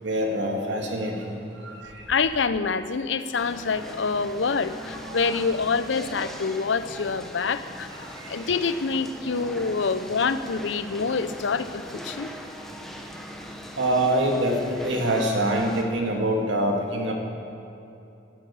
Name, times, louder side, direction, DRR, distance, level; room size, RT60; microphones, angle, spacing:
voice 1, 0.0-2.1 5.0-5.3 8.0-8.4 13.8-17.1, right 1 dB, 80° right, 1 dB, 2.2 m, -25 dB
voice 2, 2.1-7.9 8.3-12.3, left 5 dB, 85° left, 13 dB, 0.6 m, -26 dB
sound 1, 3.4-15.8, equal, ahead, 1.1 m, -40 dB
12.0 x 10.0 x 8.5 m, 2.8 s
head